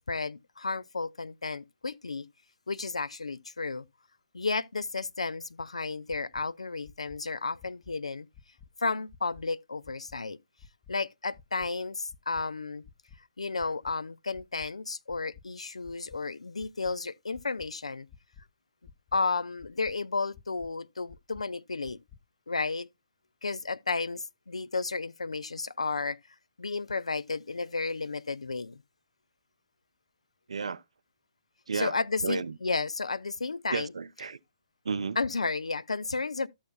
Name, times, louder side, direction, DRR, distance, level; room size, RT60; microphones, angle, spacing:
voice 1, 0.0-2.3 2.7-3.8 4.3-8.3 8.8-10.4 10.9-12.8 13.4-18.1 19.1-22.0 22.5-22.9 23.4-26.2 26.6-28.8 31.7-33.9 35.2-36.5, left 4 dB, 85° left, 0.4 m, -32 dB
sound 1, 6.1-6.4 6.8-7.2 7.6-7.9 8.3-8.7 9.1-9.4 9.8-10.2 10.6-10.9 11.3-11.7 12.1-12.4 12.8-13.2 13.6-13.9 14.3-14.7 15.1-15.4 15.8-16.2 16.6-16.9 17.3-17.7 18.1-18.4 18.8-19.2 19.6-19.9 20.3-20.7 21.1-21.4 21.8-22.2, left 7 dB, 10° left, 0.4 m, -52 dB
voice 2, 30.5-30.8 31.7-32.6 33.7-34.4 34.8-35.2, right 5 dB, 75° right, 0.5 m, -32 dB
12.5 x 7.1 x 2.2 m
figure-of-eight pair, 135°, 3 cm